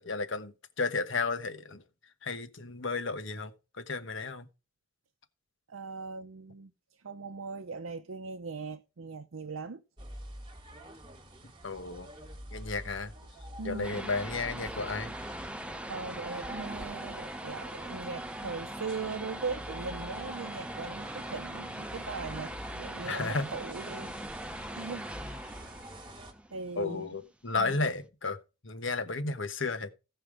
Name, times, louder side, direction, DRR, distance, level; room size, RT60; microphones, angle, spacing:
voice 1, 0.0-1.8 2.2-4.5 11.6-12.1 12.5-13.1 13.6-15.1 23.0-23.5 26.8-28.4 28.6-29.9, left 3 dB, 65° left, 1.2 m, -33 dB
voice 2, 5.7-6.7 7.0-9.8 13.6-14.1 15.9-25.1 26.5-27.1 27.6-27.8, right 4 dB, 80° right, 0.7 m, -40 dB
sound 1, 10.0-26.3, right 1 dB, 25° right, 1.5 m, -47 dB
sound 2, 13.8-27.3, right 1 dB, 5° right, 0.6 m, -41 dB
16.5 x 5.6 x 4.9 m
head